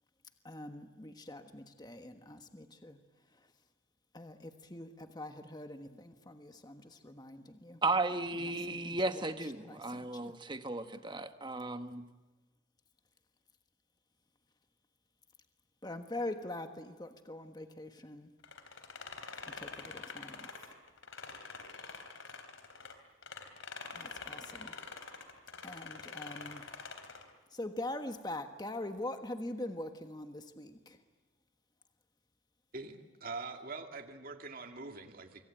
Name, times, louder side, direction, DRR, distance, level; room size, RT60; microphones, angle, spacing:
voice 1, 0.4-3.0 4.1-7.8 8.4-9.3 9.6-10.3 15.8-18.3 19.5-20.5 23.9-24.7 25.6-26.6 27.5-31.0, left 1 dB, 20° left, 7 dB, 1.4 m, -43 dB
voice 2, 7.8-12.0, right 2 dB, 20° right, 9 dB, 1.2 m, -35 dB
sound 1, 18.4-22.9 23.2-27.3, left 4 dB, 70° left, 3.4 m, -46 dB
voice 3, 32.7-35.4, right 3 dB, 45° right, 5 dB, 2.2 m, -44 dB
25.5 x 24.5 x 9.0 m, 1.2 s
head